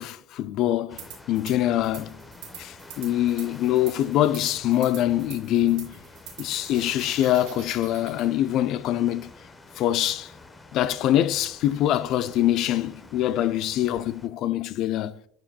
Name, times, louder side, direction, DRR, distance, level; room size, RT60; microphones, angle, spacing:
voice 1, 0.0-2.2 2.6-6.0 6.4-9.3 9.8-10.3 10.7-15.1, left 12 dB, 60° left, 0.4 m, -24 dB
sound 1, 0.9-14.3, left 2 dB, 25° left, 0.9 m, -48 dB
sound 2, 1.0-1.5 1.8-8.3, right 9 dB, 75° right, 2.4 m, -44 dB
11.5 x 4.8 x 2.2 m
hypercardioid pair, 70°, 0 cm